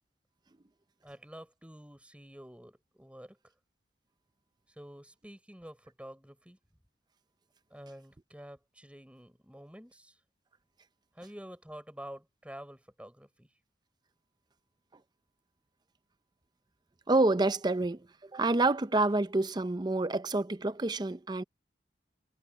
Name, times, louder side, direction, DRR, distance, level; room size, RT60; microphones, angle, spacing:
voice 1, 1.0-3.5 4.7-6.6 7.7-10.2 11.1-13.5, equal, 5° right, 6.7 m, -49 dB
voice 2, 17.1-18.1 18.3-21.4, right 2 dB, 25° right, 0.6 m, -28 dB
head